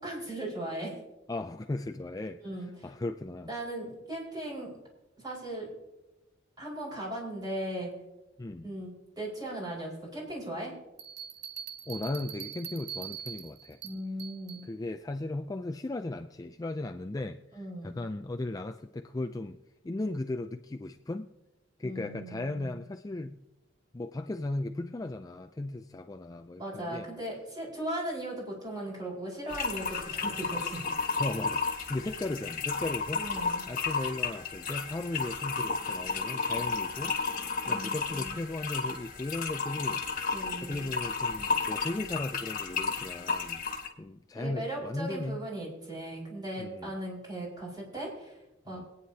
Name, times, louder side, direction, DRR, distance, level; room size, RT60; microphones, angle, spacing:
voice 1, 0.0-1.0 2.4-2.7 3.5-4.7 5.2-5.7 6.6-7.9 8.6-10.7 13.8-14.6 17.5-17.9 21.8-22.8 26.6-30.9 33.1-33.6 37.6-38.4 40.3-40.9 44.3-48.4 48.6-48.8, right 1 dB, 20° right, 4.8 m, -38 dB
voice 2, 1.3-2.4 2.8-3.5 8.4-8.7 11.9-13.8 14.6-21.3 21.8-23.4 23.9-27.1 31.2-33.2 33.7-37.2 37.7-43.6 44.0-45.4 46.6-46.9 48.7-48.9, left 2 dB, 20° left, 0.4 m, -36 dB
sound 1, 11.0-14.7, right 9 dB, 60° right, 0.8 m, -42 dB
sound 2, 29.5-43.9, left 4 dB, 45° left, 1.6 m, -33 dB
24.0 x 9.5 x 2.8 m
head